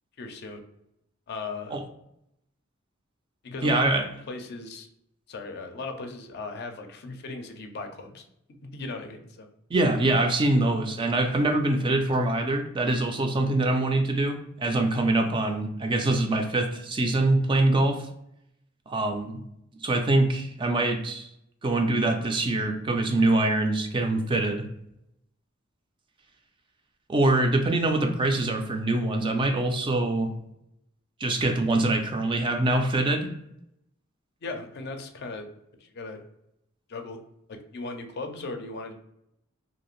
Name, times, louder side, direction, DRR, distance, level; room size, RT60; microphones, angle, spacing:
voice 1, 0.2-0.6 1.3-1.8 3.4-3.9 4.3-4.9 5.3-8.2 8.5-9.5 34.4-35.5 35.8-36.2 36.9-37.2 37.5-38.9, left 3 dB, 55° left, 5 dB, 0.4 m, -37 dB
voice 2, 3.6-4.0 9.7-18.0 18.9-19.4 19.8-21.3 21.6-24.6 27.1-30.3 31.2-33.3, right 2 dB, 25° right, 4 dB, 0.3 m, -24 dB
2.7 x 2.4 x 3.0 m, 0.79 s
head